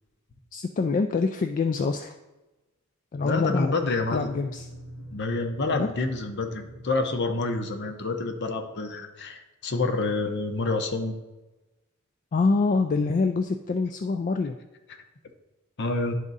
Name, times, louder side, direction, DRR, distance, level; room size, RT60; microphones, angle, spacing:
voice 1, 0.5-2.1 3.1-4.7 5.7-5.9 12.3-14.6, left 4 dB, 40° left, 6 dB, 0.3 m, -26 dB
voice 2, 3.2-4.3 5.1-11.1 15.8-16.1, left 3 dB, 55° left, 6 dB, 0.8 m, -28 dB
sound 1, 4.0-8.8, equal, 90° left, 1.2 m, -47 dB
10.5 x 3.6 x 4.0 m, 1.1 s
head